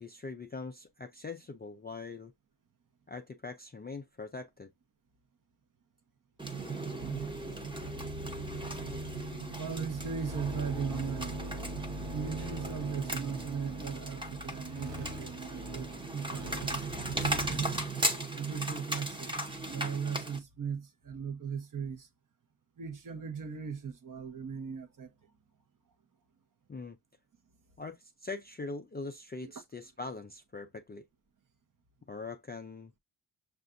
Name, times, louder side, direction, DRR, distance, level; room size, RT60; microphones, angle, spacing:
voice 1, 0.0-2.3 3.1-4.7 26.7-27.0 27.8-31.0 32.1-32.9, left 3 dB, 20° left, 0.3 m, -42 dB
sound 1, 6.4-20.4, right 1 dB, 10° right, 0.8 m, -37 dB
sound 2, 7.0-18.1, right 1 dB, 60° right, 1.1 m, -42 dB
voice 2, 9.6-11.4 12.1-16.9 17.1-17.6 18.3-19.3 19.7-22.1 22.8-25.1 29.4-29.5, right 6 dB, 40° right, 0.8 m, -38 dB
6.6 x 2.5 x 2.5 m
cardioid pair, 120°, 49 cm